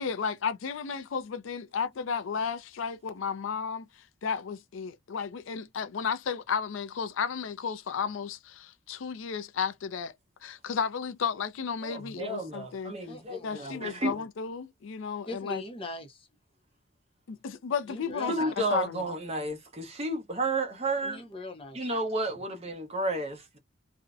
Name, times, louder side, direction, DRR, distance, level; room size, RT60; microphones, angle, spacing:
voice 1, 0.0-3.8 4.2-10.1 10.4-12.9 13.4-15.6 17.3-18.3 18.7-19.1, left 6 dB, 70° left, 0.4 m, -33 dB
voice 2, 11.8-14.1 18.3-21.2 21.7-23.6, right 2 dB, 30° right, 0.7 m, -32 dB
voice 3, 13.1-14.2 15.3-16.2 17.9-18.5 21.0-21.8, left 1 dB, 25° left, 0.6 m, -41 dB
2.5 x 2.1 x 2.3 m
head